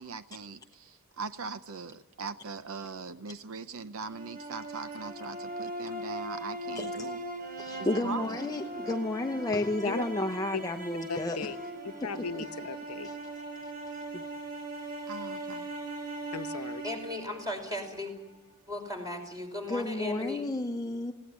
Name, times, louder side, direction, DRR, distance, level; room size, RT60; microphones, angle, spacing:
voice 1, 0.0-7.2 8.0-8.3 15.1-15.7, right 4 dB, 70° right, 12 dB, 0.8 m, -40 dB
sound 1, 4.0-18.2, right 1 dB, 45° right, 3.9 m, -40 dB
voice 2, 6.8-7.1 7.6-11.4 12.3-12.4 13.0-13.2 14.1-14.2 19.7-21.1, left 2 dB, 15° left, 4 dB, 0.8 m, -32 dB
voice 3, 11.1-11.6 11.8-13.1 16.3-16.8, left 4 dB, 90° left, 8 dB, 1.0 m, -37 dB
voice 4, 16.8-18.1 18.7-20.4, left 1 dB, 20° right, 3 dB, 5.3 m, -36 dB
20.5 x 17.5 x 9.5 m, 1.1 s
head